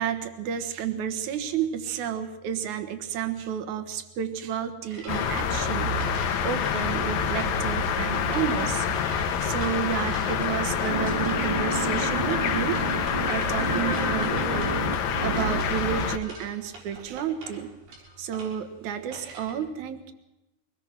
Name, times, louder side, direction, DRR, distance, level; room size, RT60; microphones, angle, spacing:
voice 1, 0.0-8.9 9.4-12.8 13.3-14.7 15.2-17.7 18.2-20.1, right 8 dB, 60° right, 8 dB, 2.5 m, -31 dB
sound 1, 4.9-19.5, right 2 dB, 80° right, 7.8 m, -45 dB
sound 2, 5.1-16.2, left 6 dB, 65° left, 1.9 m, -27 dB
sound 3, 10.8-16.0, right 3 dB, 20° right, 1.3 m, -31 dB
23.5 x 20.5 x 6.0 m, 0.99 s
omnidirectional pair, 4.5 m